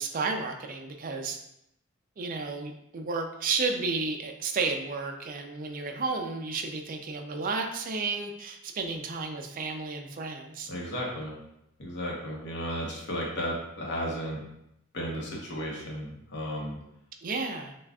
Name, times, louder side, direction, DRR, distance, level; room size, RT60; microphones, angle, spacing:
voice 1, 0.0-1.4 2.2-10.7 17.2-17.8, right 4 dB, 40° right, 4 dB, 0.4 m, -32 dB
voice 2, 10.7-11.3 11.8-14.4 14.9-16.8, equal, 60° left, -2 dB, 1.0 m, -34 dB
5.9 x 2.4 x 2.3 m, 0.81 s
head